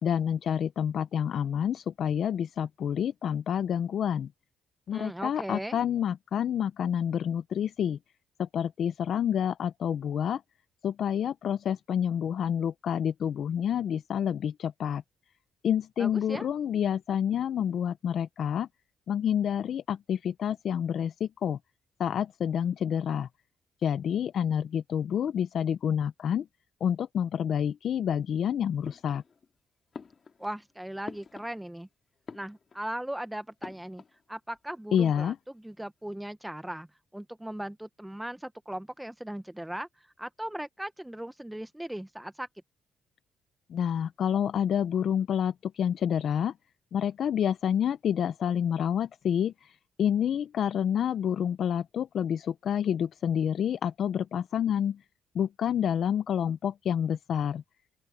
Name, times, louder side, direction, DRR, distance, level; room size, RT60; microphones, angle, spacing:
voice 1, 0.0-4.3 4.9-8.0 8.4-10.4 10.8-15.0 15.6-18.7 19.1-21.6 22.0-23.3 23.8-26.5 26.8-29.2 34.9-35.4 43.7-46.5 46.9-55.0 55.3-57.6, left 9 dB, 65° left, 0.6 m, -28 dB
voice 2, 4.9-5.8 16.0-16.5 30.4-31.9 32.3-34.0 34.3-36.9 37.1-42.5, right 1 dB, 5° right, 0.9 m, -38 dB
sound 1, 28.8-29.6 29.9-31.9 32.2-33.0 33.6-34.2 34.5-34.6 34.8-35.6, left 5 dB, 40° left, 2.1 m, -46 dB
open air
cardioid pair, 90°, 0 cm